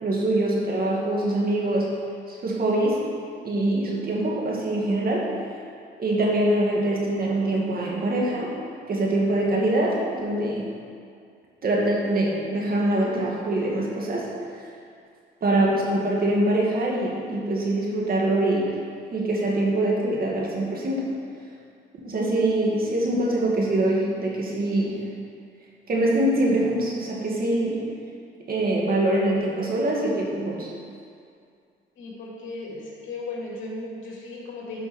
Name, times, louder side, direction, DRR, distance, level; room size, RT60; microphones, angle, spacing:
voice 1, 0.0-1.9 2.3-3.0 3.4-5.3 6.0-8.5 8.9-10.7 11.6-14.3 14.5-14.6 15.4-18.7 19.1-21.1 22.0-25.1 25.9-27.8 28.5-30.7, right 1 dB, 50° right, -3 dB, 2.3 m, -24 dB
voice 2, 32.0-34.9, left 2 dB, 75° left, -3 dB, 2.4 m, -36 dB
12.0 x 5.5 x 4.5 m, 2.3 s
cardioid pair, 90°, 20 cm